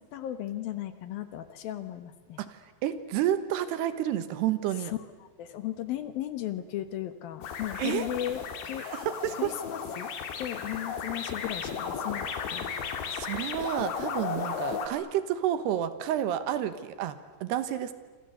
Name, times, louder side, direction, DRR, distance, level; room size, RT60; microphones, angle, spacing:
voice 1, 0.0-2.4 4.8-8.9 9.4-10.1 10.4-12.7, left 12 dB, 70° left, 11 dB, 2.6 m, -36 dB
voice 2, 2.4-4.9 7.8-8.1 8.8-9.5 13.1-17.9, right 11 dB, 75° right, 12 dB, 3.2 m, -30 dB
sound 1, 7.4-14.9, left 6 dB, 85° left, 4.5 m, -35 dB
27.5 x 26.5 x 8.0 m, 1.4 s
omnidirectional pair, 5.0 m